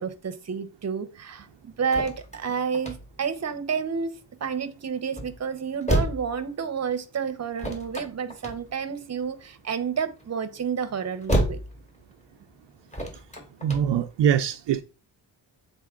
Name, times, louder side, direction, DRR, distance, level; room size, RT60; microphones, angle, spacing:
voice 1, 0.0-4.1 4.4-11.6, right 6 dB, 35° right, 0.8 m, -30 dB
sound 1, 1.3-14.2, equal, 15° left, 1.6 m, -33 dB
voice 2, 13.6-14.8, right 9 dB, 70° right, 0.5 m, -23 dB
7.4 x 4.0 x 3.6 m
wide cardioid pair, 115°, 45 cm